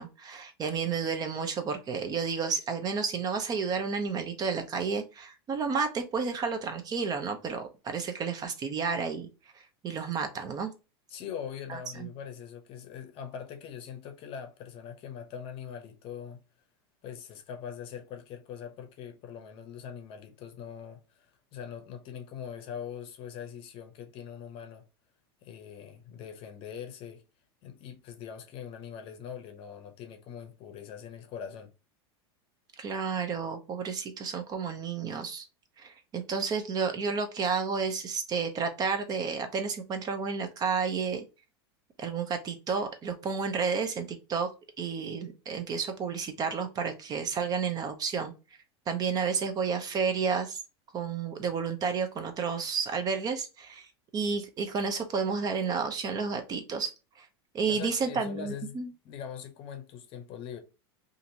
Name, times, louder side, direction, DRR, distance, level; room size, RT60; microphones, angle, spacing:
voice 1, 0.0-9.3 9.8-10.7 11.7-12.1 32.8-35.4 35.8-41.2 42.0-44.5 44.8-48.3 48.9-50.6 50.9-53.9 54.1-56.9 57.2-57.3 57.5-58.9, right 5 dB, 30° right, 0.6 m, -31 dB
voice 2, 11.1-16.4 17.0-24.8 25.4-27.2 27.6-31.7 57.7-60.6, left 8 dB, 45° left, 0.7 m, -42 dB
2.8 x 2.5 x 2.7 m
supercardioid pair, 120°, 13 cm